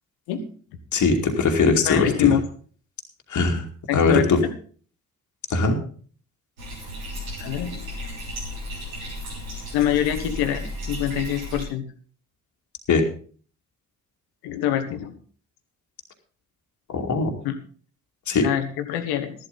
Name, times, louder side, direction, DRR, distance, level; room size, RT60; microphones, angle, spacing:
voice 1, 0.9-2.3 3.3-3.7 3.9-4.4 5.5-5.8 12.9-13.0 16.9-17.3 18.3-18.5, left 4 dB, 45° left, 2 dB, 2.4 m, -20 dB
voice 2, 1.8-2.4 3.9-4.3 7.4-7.9 9.7-11.8 14.4-15.1 17.4-17.5 18.4-19.3, left 11 dB, 65° left, 8 dB, 1.7 m, -24 dB
Bathtub (filling or washing), 6.6-11.6, equal, 85° right, 3.4 m, -34 dB
13.5 x 12.0 x 4.0 m, 0.44 s
figure-of-eight pair, 45°, 40 cm